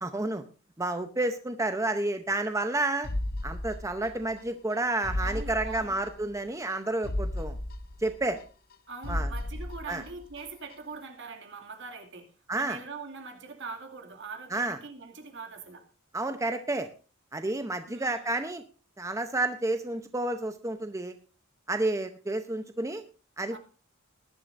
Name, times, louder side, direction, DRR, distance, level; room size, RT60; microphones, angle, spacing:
voice 1, 0.0-0.4 0.8-3.1 3.4-7.6 8.0-8.4 9.1-9.3 9.9-10.0 12.5-12.8 14.5-14.8 16.1-16.9 17.3-18.6 19.0-21.1 21.7-23.0 23.4-23.6, right 2 dB, 15° right, 8 dB, 0.7 m, -30 dB
sound 1, 3.0-4.4 4.7-4.8 5.0-6.4 6.7-6.8 7.0-8.7 9.0-10.4 10.7-10.8, left 1 dB, 45° left, 0.8 m, -34 dB
voice 2, 5.2-6.0 8.9-12.3 12.5-15.9 17.9-18.3 23.5-23.6, right 4 dB, 60° right, 4 dB, 2.4 m, -43 dB
19.5 x 11.0 x 2.6 m, 0.35 s
head